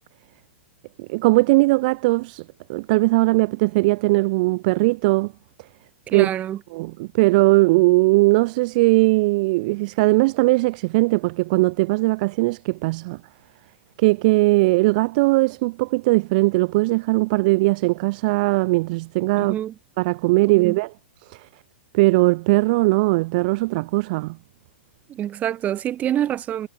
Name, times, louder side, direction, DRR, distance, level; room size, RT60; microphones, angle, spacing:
voice 1, 1.0-2.4 2.7-5.3 6.1-6.3 6.7-13.2 14.0-19.5 20.0-20.9 21.3-21.5 21.9-24.4, right 23 dB, 40° right, 0.9 m, -19 dB
voice 2, 6.1-6.6 19.4-19.8 20.4-20.7 25.1-26.7, right 11 dB, 20° right, 1.9 m, -26 dB
figure-of-eight pair, 105°, 7 cm